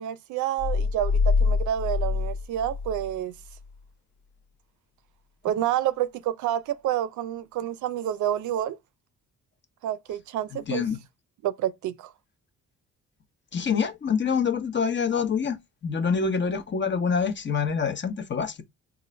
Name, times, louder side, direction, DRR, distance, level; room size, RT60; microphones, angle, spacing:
voice 1, 0.0-3.3 5.4-8.8 9.8-10.8 11.4-12.1, right 11 dB, 75° right, 0.5 m, -28 dB
sound 1, 0.6-3.2 3.5-3.6, left 4 dB, 70° left, 0.6 m, -25 dB
voice 2, 10.7-11.0 13.5-15.6 15.8-18.6, left 6 dB, 40° left, 0.8 m, -26 dB
3.8 x 2.5 x 3.1 m
cardioid pair, 90°, 30 cm